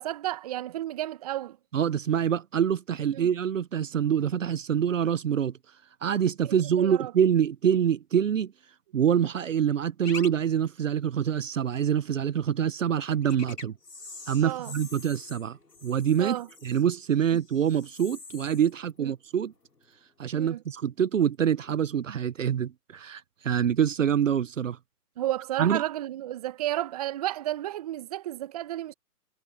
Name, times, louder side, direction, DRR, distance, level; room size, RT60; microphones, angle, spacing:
voice 1, 0.0-1.6 3.1-3.3 6.5-7.1 14.4-14.7 16.2-16.5 19.0-19.1 20.3-20.6 25.2-28.9, right 14 dB, 25° right, 0.9 m, -32 dB
voice 2, 1.7-5.5 6.0-8.5 8.9-13.7 14.3-16.4 16.6-19.5 20.2-24.8 25.6-25.8, right 8 dB, 55° right, 0.9 m, -25 dB
sound 1, 10.0-10.3 10.6-10.7 13.2-20.1 20.3-20.9 21.6-21.7, left 3 dB, 90° left, 4.5 m, -45 dB
figure-of-eight pair, 140°, 47 cm